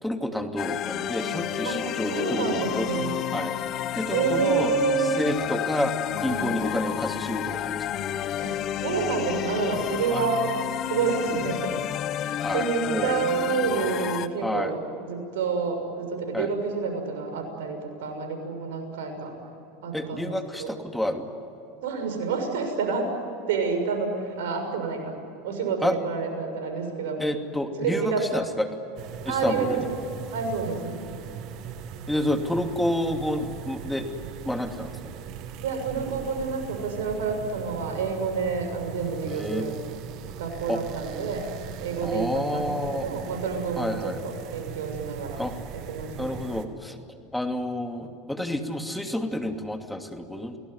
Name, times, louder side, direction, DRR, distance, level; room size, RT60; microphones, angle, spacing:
voice 1, 0.0-2.9 3.3-3.5 3.9-4.8 5.2-5.9 6.2-7.8 10.1-10.2 12.4-13.2 14.4-14.7 16.3-16.5 19.9-21.3 25.8-25.9 27.2-28.7 29.2-29.8 32.1-34.1 34.5-34.9 39.2-39.7 40.7-40.8 42.0-43.0 43.8-44.2 45.4-45.5 46.2-47.0 47.3-50.5, left 1 dB, 5° left, 5 dB, 2.7 m, -29 dB
sound 1, 0.6-14.3, left 11 dB, 45° left, 1.2 m, -30 dB
voice 2, 2.1-3.2 4.1-5.1 6.3-6.5 8.4-10.5 10.9-11.8 12.2-19.3 19.8-20.7 21.8-23.1 23.5-25.1 25.4-27.2 27.8-28.2 29.3-31.1 35.6-39.7 40.4-41.5 41.8-45.4 45.9-46.4, right 5 dB, 80° right, 5 dB, 6.6 m, -29 dB
sound 2, 29.0-46.7, right 8 dB, 55° right, 2.1 m, -40 dB
28.5 x 19.0 x 9.7 m, 2.9 s
hypercardioid pair, 95°, 0 cm